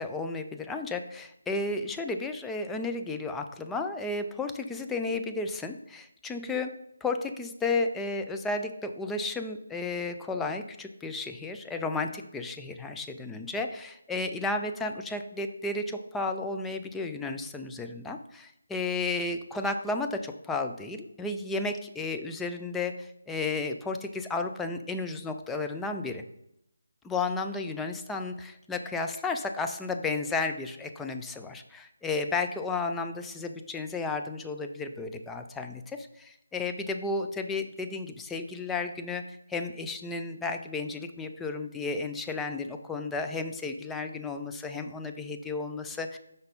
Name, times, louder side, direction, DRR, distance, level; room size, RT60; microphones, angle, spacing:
voice 1, 0.0-6.7 7.0-26.2 27.0-46.2, left 3 dB, 5° left, 5 dB, 0.3 m, -33 dB
5.3 x 4.0 x 5.2 m, 0.79 s
figure-of-eight pair, 150°, 0 cm